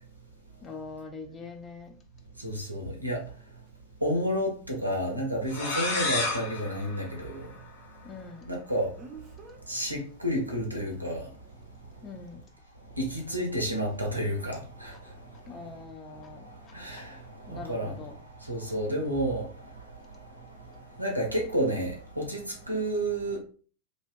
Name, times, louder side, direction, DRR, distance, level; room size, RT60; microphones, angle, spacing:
voice 1, 0.6-1.9 8.0-8.5 12.0-12.4 15.5-16.5 17.5-18.2, left 4 dB, 25° left, 0.5 m, -43 dB
voice 2, 2.4-3.2 4.0-7.5 8.5-8.9 9.7-11.3 13.0-15.1 16.3-17.2 17.5-18.0 18.4-19.9 20.7-23.4, equal, 90° right, 0.6 m, -31 dB
Speech, 3.7-3.8 9.0-9.6 10.8-11.1, right 5 dB, 30° right, 0.5 m, -47 dB
sound 1, 5.5-8.1, left 2 dB, 55° left, 0.7 m, -32 dB
2.6 x 2.1 x 2.2 m
figure-of-eight pair, 90°, 0 cm